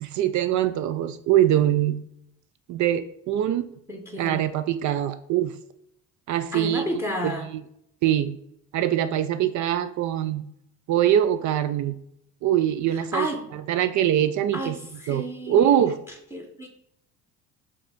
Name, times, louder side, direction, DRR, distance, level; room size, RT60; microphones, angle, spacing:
voice 1, 0.0-2.0 2.7-3.7 4.2-5.5 6.3-6.8 7.2-7.6 8.0-8.4 8.7-10.4 10.9-12.0 12.4-14.8 15.1-16.0, right 11 dB, 45° right, 12 dB, 0.4 m, -23 dB
voice 2, 3.9-4.5 6.5-7.5 13.1-13.4 14.5-15.9 16.3-16.7, equal, 5° right, 3 dB, 0.9 m, -32 dB
4.9 x 2.9 x 3.4 m, 0.73 s
hypercardioid pair, 55°, 44 cm